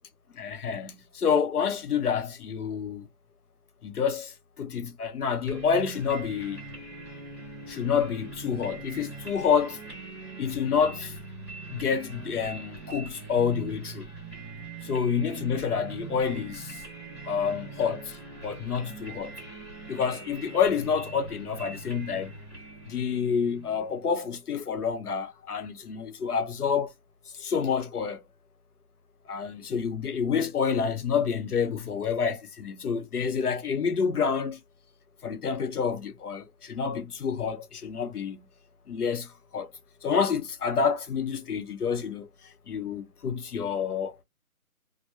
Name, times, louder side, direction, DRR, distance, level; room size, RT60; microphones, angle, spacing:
voice 1, 0.4-3.1 3.8-6.6 7.7-9.8 10.4-11.1 11.7-14.1 14.8-16.8 17.3-18.2 18.4-19.4 19.9-22.3 22.9-26.9 27.4-28.2 29.3-34.6 35.2-38.5 38.9-39.7 40.0-42.3 42.7-44.2, left 6 dB, 85° left, 0.7 m, -28 dB
sound 1, 5.5-24.2, right 3 dB, 20° right, 0.9 m, -42 dB
2.2 x 2.0 x 2.7 m
figure-of-eight pair, 175°, 45 cm